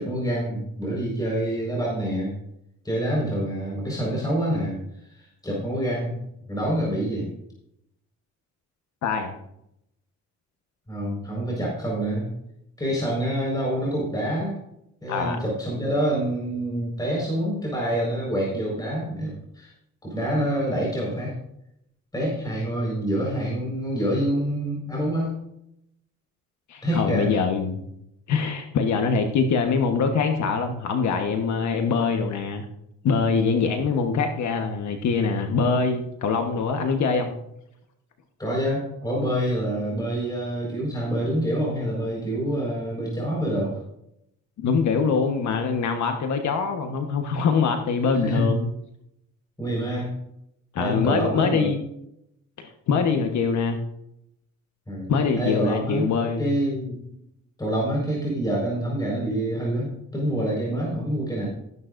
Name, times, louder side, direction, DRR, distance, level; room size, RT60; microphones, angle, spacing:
voice 1, 0.0-2.3 2.8-6.2 6.5-7.3 10.9-12.3 12.8-14.5 15.0-19.7 20.0-21.4 22.1-25.4 26.8-27.3 38.4-43.8 48.1-48.5 49.6-50.1 50.8-51.7 54.9-55.1 55.4-56.1 56.4-57.1 57.6-61.5, right 1 dB, 15° left, -4 dB, 4.8 m, -26 dB
voice 2, 9.0-9.3 15.1-15.4 26.7-27.8 28.3-32.6 33.0-37.3 44.6-48.7 50.7-51.8 52.6-53.8 55.1-56.6, left 5 dB, 70° left, 5 dB, 1.2 m, -23 dB
14.0 x 11.0 x 2.6 m, 0.78 s
cardioid pair, 90°, 30 cm